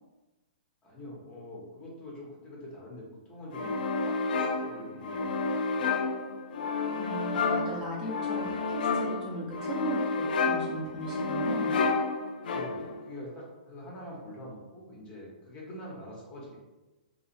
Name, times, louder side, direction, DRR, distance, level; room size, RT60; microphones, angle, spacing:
voice 1, 0.8-3.7 4.0-5.9 12.4-16.6, left 1 dB, 20° left, -4 dB, 0.7 m, -45 dB
sound 1, 3.5-13.0, left 4 dB, 75° left, 0.3 m, -30 dB
voice 2, 6.9-11.8, equal, 15° right, -6 dB, 0.6 m, -37 dB
2.7 x 2.4 x 2.5 m, 1.1 s
hypercardioid pair, 145°, 5 cm